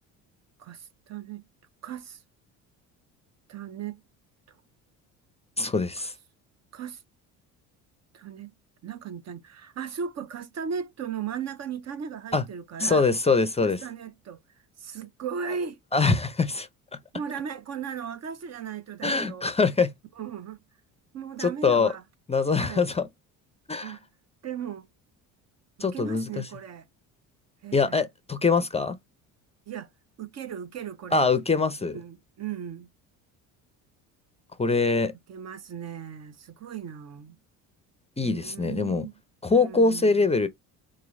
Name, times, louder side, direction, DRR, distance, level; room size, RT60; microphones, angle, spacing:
voice 1, 0.6-1.4 1.8-2.2 3.5-4.0 6.7-7.0 8.1-8.5 8.8-13.1 13.6-14.4 14.8-15.8 17.1-19.5 20.2-20.6 21.1-22.0 22.6-22.9 23.8-24.0 24.4-24.9 25.8-26.9 27.6-28.0 29.7-29.9 30.2-31.2 31.9-32.9 35.3-37.4 38.2-39.1 39.5-40.3, right 7 dB, 40° right, 0.6 m, -37 dB
voice 2, 5.6-6.1 12.3-12.4 12.8-13.8 15.9-16.7 19.0-19.9 21.4-21.9 22.3-23.1 23.7-24.0 25.8-26.5 27.7-29.0 31.1-32.0 34.6-35.1 38.2-39.1 39.4-40.5, left 4 dB, 15° left, 0.5 m, -23 dB
3.8 x 3.0 x 2.5 m
supercardioid pair, 85°, 39 cm